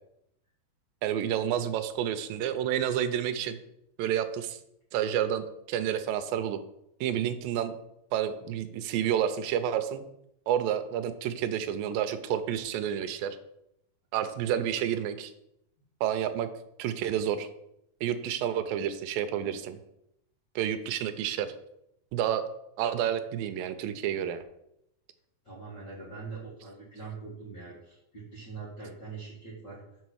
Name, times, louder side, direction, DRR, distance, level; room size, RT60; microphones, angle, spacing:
voice 1, 1.0-3.6 4.0-4.6 4.9-6.6 7.0-7.7 8.1-10.0 10.5-13.4 14.1-15.3 16.0-16.5 16.8-17.5 18.0-19.8 20.6-21.5 22.1-22.4 22.8-24.4, right 10 dB, 85° right, 10 dB, 2.3 m, -29 dB
voice 2, 25.4-29.8, right 4 dB, 35° left, -8 dB, 2.0 m, -43 dB
6.2 x 4.1 x 6.3 m, 0.80 s
omnidirectional pair, 4.0 m